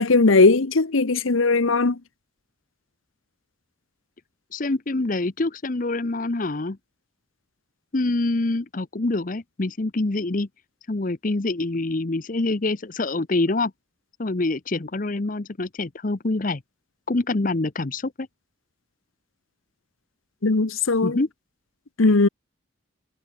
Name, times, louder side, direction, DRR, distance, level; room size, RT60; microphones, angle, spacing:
voice 1, 0.0-2.0 20.4-21.2 22.0-22.3, left 3 dB, 85° left, 1.0 m, -18 dB
voice 2, 4.5-6.8 7.9-10.5 10.9-13.7 14.2-16.6 17.1-18.3 21.0-21.3, left 2 dB, 40° left, 0.8 m, -25 dB
head